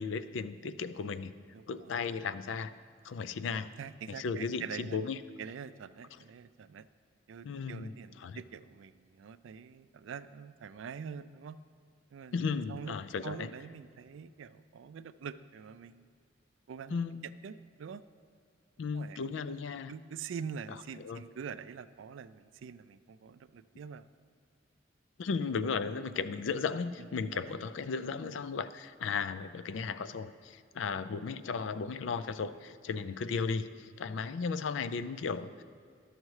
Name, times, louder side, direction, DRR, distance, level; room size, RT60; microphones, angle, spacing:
voice 1, 0.0-1.3 1.7-2.7 3.0-3.7 4.1-5.2 7.4-8.4 12.3-13.5 16.9-17.3 18.8-19.9 21.0-21.2 25.2-35.6, left 5 dB, 70° left, 14 dB, 0.4 m, -35 dB
voice 2, 1.5-2.0 3.8-5.0 5.4-6.9 7.3-11.6 12.1-12.4 12.7-13.0 13.2-16.1 16.7-17.0 17.4-18.0 18.9-19.2 19.9-24.1 27.5-27.6, right 6 dB, 75° right, 14 dB, 0.4 m, -45 dB
12.0 x 6.5 x 4.7 m, 2.2 s
head